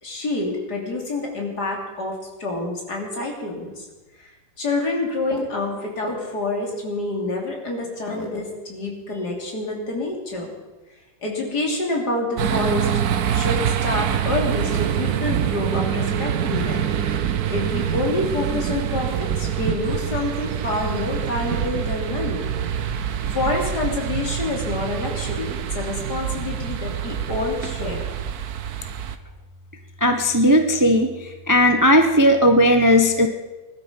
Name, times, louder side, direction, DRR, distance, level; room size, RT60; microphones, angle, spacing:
voice 1, 0.0-3.9 4.2-4.3 4.6-10.5 11.2-12.9 13.3-16.9 17.5-22.5 23.3-28.1, left 2 dB, 60° left, -1 dB, 3.6 m, -27 dB
sound 1, 12.4-29.2, right 9 dB, 65° right, 1.3 m, -25 dB
voice 2, 30.0-33.3, equal, 20° right, 5 dB, 0.6 m, -16 dB
20.5 x 12.5 x 5.2 m, 1.2 s
omnidirectional pair, 2.0 m